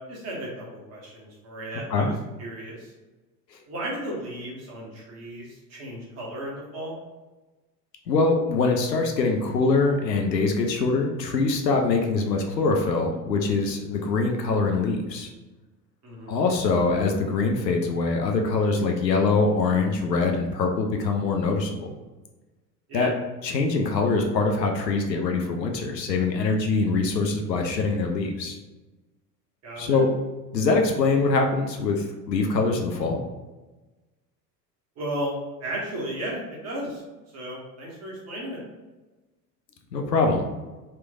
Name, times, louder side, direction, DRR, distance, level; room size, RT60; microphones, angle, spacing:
voice 1, 0.1-2.9 3.7-6.9 16.0-16.4 22.9-23.1 29.6-30.0 35.0-37.0 37.3-38.6, right 1 dB, 30° right, -4 dB, 1.3 m, -34 dB
voice 2, 8.1-15.3 16.3-21.9 22.9-23.1 23.4-28.6 29.8-30.1 30.5-33.2 39.9-40.4, left 3 dB, 80° left, 3 dB, 0.6 m, -23 dB
3.2 x 3.0 x 2.4 m, 1.2 s
figure-of-eight pair, 75°, 50 cm